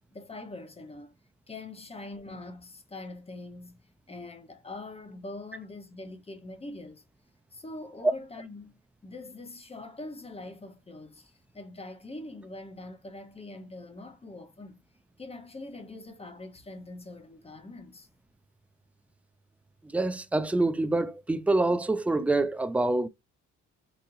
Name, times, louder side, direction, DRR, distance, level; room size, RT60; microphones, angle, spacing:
voice 1, 0.1-1.1 1.5-7.0 7.5-8.7 9.0-14.8 15.2-18.1, left 2 dB, 20° left, 0.9 m, -43 dB
voice 2, 19.9-23.1, right 2 dB, 5° right, 0.3 m, -26 dB
4.1 x 2.7 x 2.6 m
cardioid pair, 90°, 30 cm